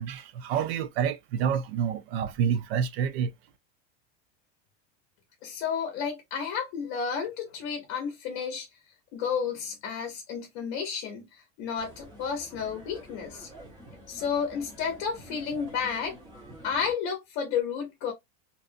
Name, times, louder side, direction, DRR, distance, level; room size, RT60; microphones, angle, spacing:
voice 1, 0.0-3.3, right 8 dB, 65° right, 0.6 m, -28 dB
voice 2, 5.4-8.7 9.1-13.5 14.1-16.2 16.6-18.1, left 6 dB, 45° left, 0.9 m, -32 dB
sound 1, 11.7-16.9, right 1 dB, 10° right, 0.9 m, -48 dB
2.7 x 2.5 x 2.5 m
supercardioid pair, 180°, 32 cm